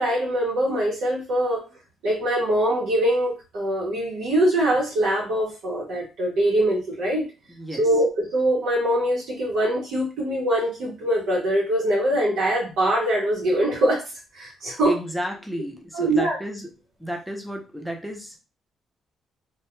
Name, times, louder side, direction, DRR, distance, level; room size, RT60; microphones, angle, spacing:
voice 1, 0.0-1.6 2.0-7.3 7.8-14.0 14.3-15.0 15.9-16.4, right 1 dB, 75° right, -4 dB, 0.8 m, -23 dB
voice 2, 7.6-7.9 14.8-16.7 17.0-18.4, equal, ahead, 1 dB, 0.5 m, -32 dB
2.2 x 2.1 x 3.0 m, 0.29 s
cardioid pair, 155°, 0 cm